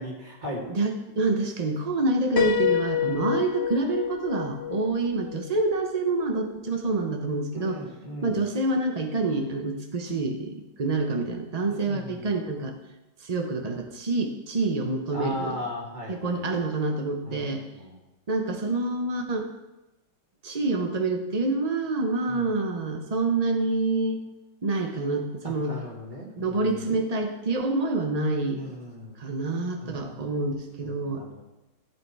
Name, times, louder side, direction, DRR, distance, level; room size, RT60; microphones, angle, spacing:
voice 1, 0.0-0.7 7.5-8.4 11.7-12.3 15.1-16.4 17.2-18.0 22.3-22.5 25.4-26.7 28.5-29.2 29.8-31.4, left 1 dB, 20° right, -3 dB, 2.6 m, -38 dB
voice 2, 0.7-7.8 8.2-12.7 13.2-15.6 16.1-17.6 18.3-19.5 20.4-24.2 24.6-25.8 26.4-28.6 29.2-31.2, right 3 dB, 55° right, 3 dB, 0.4 m, -27 dB
Piano, 2.4-6.1, left 10 dB, 50° left, 0.8 m, -28 dB
14.5 x 8.2 x 4.7 m, 1.0 s
omnidirectional pair, 2.2 m